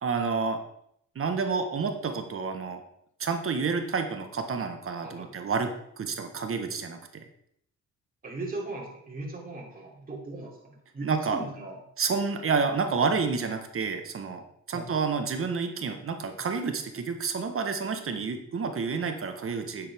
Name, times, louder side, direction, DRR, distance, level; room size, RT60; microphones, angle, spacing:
voice 1, 0.0-0.6 1.1-2.8 3.2-5.7 6.0-7.2 11.0-11.4 12.0-14.4 14.7-19.9, right 5 dB, 45° right, 6 dB, 1.5 m, -29 dB
voice 2, 5.0-5.3 8.2-11.8 14.7-15.1, right 2 dB, 30° right, -3 dB, 3.3 m, -38 dB
10.5 x 7.6 x 3.7 m, 0.71 s
cardioid pair, 90°, 30 cm